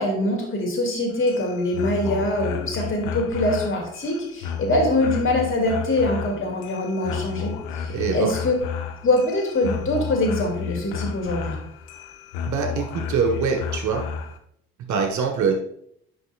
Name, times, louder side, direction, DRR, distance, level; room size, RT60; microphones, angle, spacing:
voice 1, 0.0-8.5 9.0-11.6, left 1 dB, 30° left, 1 dB, 2.5 m, -23 dB
sound 1, 1.1-14.4, left 7 dB, 60° left, 0.9 m, -32 dB
voice 2, 7.9-8.3 12.5-14.1 14.9-15.5, right 5 dB, 40° right, 3 dB, 1.6 m, -24 dB
10.0 x 5.3 x 2.5 m, 0.71 s
figure-of-eight pair, 50°, 43 cm